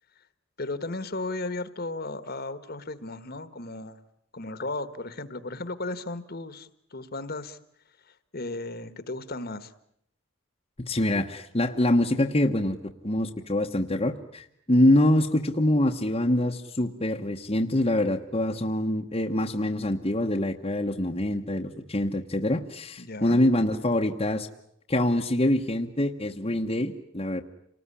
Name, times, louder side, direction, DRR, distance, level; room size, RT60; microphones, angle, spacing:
voice 1, 0.6-4.0 4.3-7.6 8.3-9.7 23.0-23.4, left 2 dB, 45° left, 13 dB, 1.4 m, -35 dB
voice 2, 10.9-12.8 13.0-24.5 24.9-27.4, left 1 dB, 25° left, 1 dB, 1.1 m, -25 dB
28.0 x 19.5 x 9.9 m, 0.74 s
head